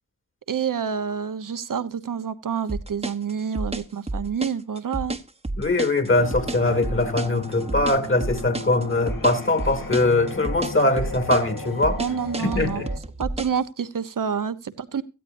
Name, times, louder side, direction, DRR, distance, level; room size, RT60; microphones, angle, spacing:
voice 1, 0.5-5.2 12.0-12.8 13.2-15.0, right 7 dB, 65° right, 1.2 m, -28 dB
sound 1, 2.7-13.6, right 2 dB, 20° right, 1.2 m, -30 dB
voice 2, 5.6-12.0 12.4-12.9, left 2 dB, 35° left, 2.7 m, -22 dB
sound 2, 6.1-13.0, left 2 dB, 70° left, 2.7 m, -36 dB
17.5 x 13.0 x 2.7 m
cardioid pair, 55°, 34 cm